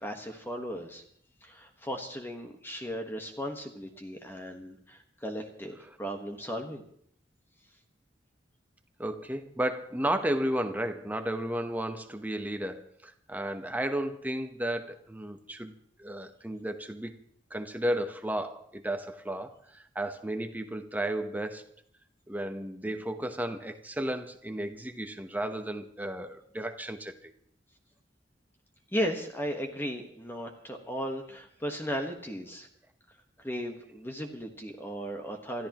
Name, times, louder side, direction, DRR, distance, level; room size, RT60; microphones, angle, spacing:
voice 1, 0.0-1.0 1.4-6.8 28.9-32.7 33.4-35.7, equal, 15° left, 1.4 m, -36 dB
voice 2, 9.0-15.7 16.0-17.2 17.5-19.6 19.9-21.7 22.3-27.3, right 1 dB, 10° right, 1.0 m, -33 dB
27.5 x 14.0 x 3.0 m
head